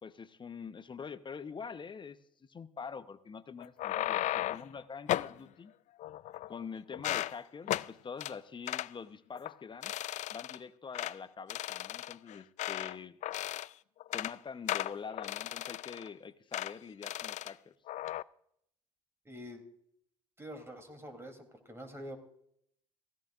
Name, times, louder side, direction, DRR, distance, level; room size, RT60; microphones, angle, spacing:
voice 1, 0.0-5.7 6.5-9.9 10.3-13.2 14.1-17.7, left 6 dB, 30° left, 13 dB, 0.9 m, -45 dB
sound 1, 3.6-4.7 5.1-5.4 6.0-6.6 6.9-7.3 7.7-7.9 8.2-8.3 8.7-8.9 9.3-9.5 9.8-10.6 10.9-11.2 11.5-13.0 13.2-13.7 14.0-14.3 14.7-16.1 16.5-16.7 17.0-17.5 17.9-18.2, left 14 dB, 50° left, 0.4 m, -35 dB
voice 2, 19.2-19.6 20.4-22.2, equal, 15° right, 5 dB, 3.2 m, -46 dB
16.5 x 16.0 x 2.5 m, 0.70 s
hypercardioid pair, 60°, 16 cm